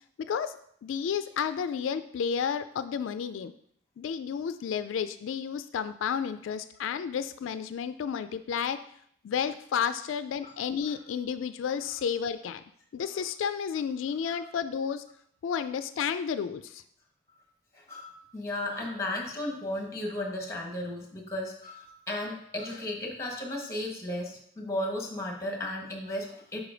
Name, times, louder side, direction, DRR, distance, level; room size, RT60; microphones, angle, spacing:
voice 1, 0.3-3.5 4.0-8.8 9.2-12.6 12.9-15.0 15.4-16.8, left 7 dB, 85° left, 12 dB, 0.3 m, -31 dB
voice 2, 17.7-26.6, left 1 dB, 15° left, 1 dB, 1.3 m, -35 dB
5.1 x 4.8 x 5.0 m, 0.66 s
head